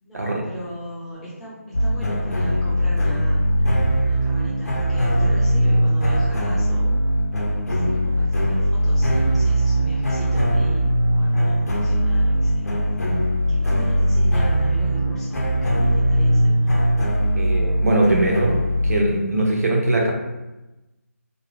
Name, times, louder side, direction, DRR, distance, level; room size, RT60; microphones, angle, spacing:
voice 1, 0.0-7.0 7.5-12.7 13.5-16.7, equal, ahead, -11 dB, 0.3 m, -36 dB
sound 1, 1.7-19.0, equal, 85° left, 0.6 m, -20 dB
voice 2, 17.3-18.5 18.8-20.1, right 1 dB, 80° right, -1 dB, 0.7 m, -20 dB
2.6 x 2.0 x 2.9 m, 1.0 s
hypercardioid pair, 170°, 8 cm